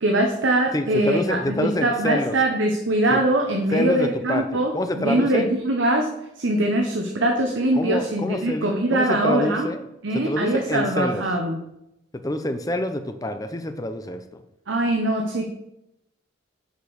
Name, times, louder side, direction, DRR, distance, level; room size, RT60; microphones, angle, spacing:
voice 1, 0.0-4.7 5.0-6.1 6.4-9.7 10.0-11.6 14.7-15.5, right 1 dB, 65° right, 2 dB, 0.9 m, -22 dB
voice 2, 0.7-2.3 3.1-3.2 3.7-5.5 7.7-9.9 10.3-11.2 12.1-14.4, left 1 dB, 15° left, 8 dB, 0.5 m, -27 dB
6.6 x 5.0 x 6.4 m, 0.85 s
head